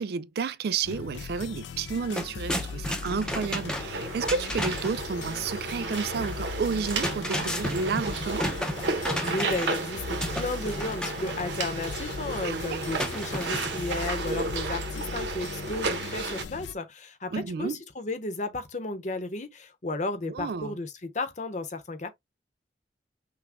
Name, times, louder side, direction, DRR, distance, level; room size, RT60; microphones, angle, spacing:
voice 1, 0.0-8.5 12.4-12.8 17.3-17.8 20.2-20.8, right 5 dB, 60° right, 0.3 m, -31 dB
sound 1, 0.8-16.7, left 5 dB, 85° left, 0.4 m, -39 dB
sound 2, 1.5-1.6 1.9-5.0 6.7-9.9 10.2-11.2 13.0-13.9, left 1 dB, 5° left, 0.7 m, -33 dB
sound 3, 3.0-16.4, right 3 dB, 85° right, 1.0 m, -33 dB
voice 2, 9.2-22.1, left 2 dB, 45° left, 0.9 m, -34 dB
6.0 x 2.2 x 3.6 m
head